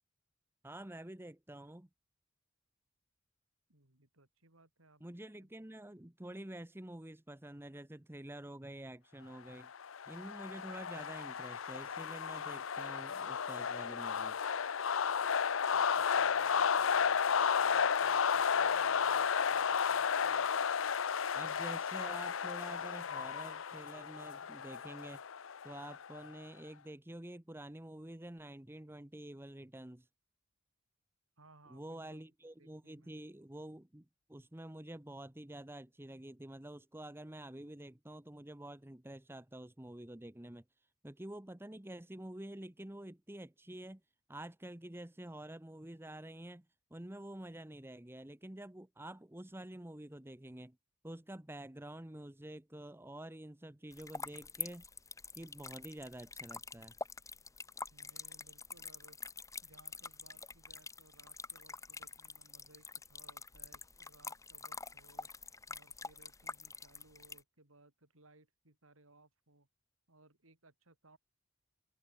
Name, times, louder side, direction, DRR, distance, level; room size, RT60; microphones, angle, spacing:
voice 1, 0.6-1.9 5.0-9.7 10.1-14.4 21.3-25.2 25.6-30.1 31.7-40.6 41.0-44.0 44.3-50.8 51.0-54.8 55.3-57.0, right 1 dB, 10° right, 1.0 m, -48 dB
voice 2, 3.7-5.5 15.7-20.5 31.4-32.2 32.6-33.3 57.9-59.2 59.6-65.3 65.7-69.7 70.1-71.2, right 2 dB, 85° right, 5.0 m, -64 dB
sound 1, 9.6-26.3, left 6 dB, 75° left, 0.6 m, -33 dB
sound 2, 53.9-67.4, left 4 dB, 15° left, 2.0 m, -46 dB
open air
head